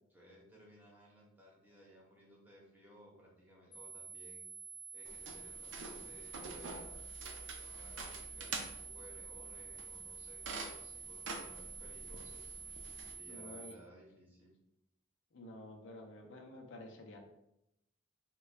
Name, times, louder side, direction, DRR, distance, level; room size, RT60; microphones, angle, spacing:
voice 1, 0.1-4.5 4.9-7.0 7.6-12.6 13.1-14.5, equal, 10° right, -4 dB, 0.9 m, -60 dB
sound 1, 3.7-13.7, right 5 dB, 20° left, 0.5 m, -49 dB
sound 2, 5.1-13.1, right 3 dB, 80° right, 0.5 m, -47 dB
voice 2, 13.3-13.7 15.3-17.2, left 1 dB, 90° left, 2 dB, 0.6 m, -50 dB
3.7 x 2.2 x 3.2 m, 0.83 s
head